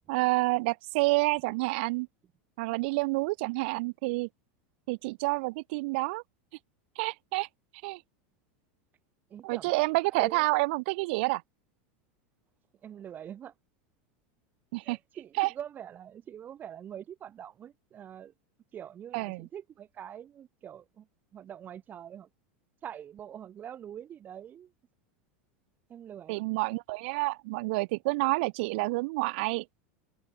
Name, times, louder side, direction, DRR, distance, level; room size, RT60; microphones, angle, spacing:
voice 1, 0.1-2.1 2.6-4.3 4.9-6.2 6.9-7.5 7.8-8.0 9.4-11.4 14.7-15.0 15.4-15.5 19.1-19.5 26.3-29.6, right 25 dB, 65° right, 1.8 m, -28 dB
voice 2, 9.3-9.7 10.1-10.5 12.8-13.5 14.8-18.3 18.7-21.1 21.3-22.3 22.8-24.7 25.9-26.4, right 9 dB, 30° right, 4.0 m, -44 dB
supercardioid pair, 125°, 6 cm